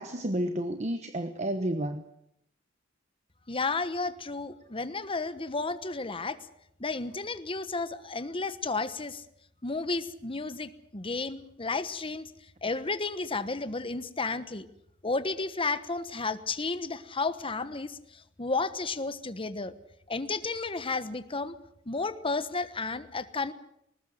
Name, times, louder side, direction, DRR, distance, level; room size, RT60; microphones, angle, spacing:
voice 1, 0.0-2.0, right 1 dB, 35° right, 9 dB, 1.1 m, -31 dB
voice 2, 3.5-6.4 6.8-9.2 9.6-12.3 12.6-14.7 15.0-19.7 20.1-21.5 21.9-23.5, left 3 dB, 30° left, 12 dB, 1.2 m, -32 dB
21.0 x 19.0 x 7.9 m, 0.75 s
head